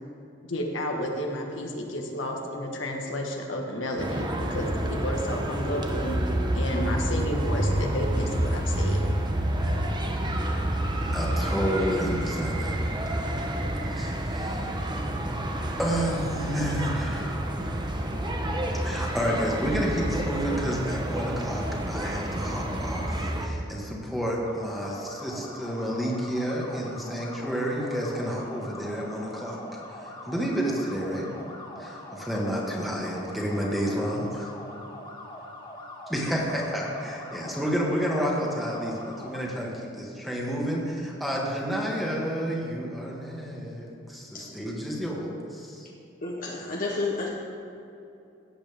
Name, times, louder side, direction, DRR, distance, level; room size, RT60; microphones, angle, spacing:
voice 1, 0.5-6.2 6.5-9.1, left 1 dB, 85° left, 1 dB, 1.5 m, -31 dB
sound 1, 4.0-23.5, right 1 dB, 25° right, 0.9 m, -29 dB
voice 2, 11.1-12.8 13.8-14.7 15.8-17.4 18.8-29.6 30.0-31.3 31.8-34.5 36.1-45.9, equal, ahead, -3 dB, 1.7 m, -30 dB
sound 2, 24.4-39.4, left 1 dB, 25° left, 1.6 m, -43 dB
voice 3, 46.2-47.3, left 3 dB, 45° left, -3 dB, 1.0 m, -30 dB
17.0 x 7.9 x 3.5 m, 2.7 s
head